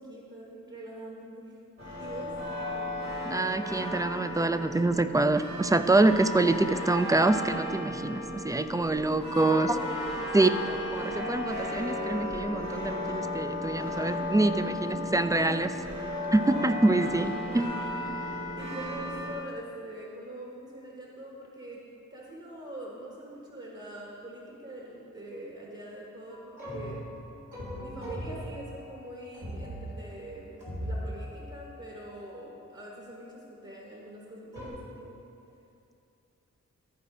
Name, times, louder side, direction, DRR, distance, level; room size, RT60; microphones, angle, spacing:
voice 1, 0.0-1.6 2.0-2.3 9.0-10.1 14.6-15.6 18.6-21.8 22.1-27.1 27.7-35.2, right 1 dB, 40° right, -4 dB, 1.5 m, -43 dB
sound 1, 1.8-19.4, left 1 dB, 65° right, 2.4 m, -34 dB
voice 2, 3.2-9.8 10.3-15.7 16.3-17.7, right 2 dB, 10° right, 10 dB, 0.3 m, -26 dB
sound 2, 26.3-33.2 34.5-34.7, equal, 90° right, 2.5 m, -40 dB
13.0 x 4.9 x 4.9 m, 2.6 s
wide cardioid pair, 80°, 30 cm